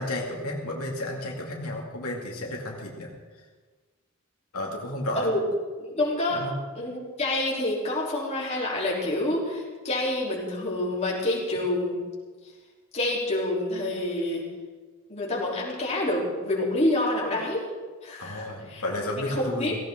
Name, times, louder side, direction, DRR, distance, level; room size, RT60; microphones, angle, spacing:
voice 1, 0.0-3.1 4.5-5.3 6.3-6.5 18.2-19.8, left 1 dB, 85° left, -1 dB, 2.5 m, -32 dB
voice 2, 5.8-6.4 6.7-12.0 12.9-14.4 15.1-17.7 18.0-18.8 19.3-19.7, left 1 dB, 30° left, -4 dB, 3.7 m, -27 dB
17.0 x 17.0 x 3.9 m, 1.4 s
head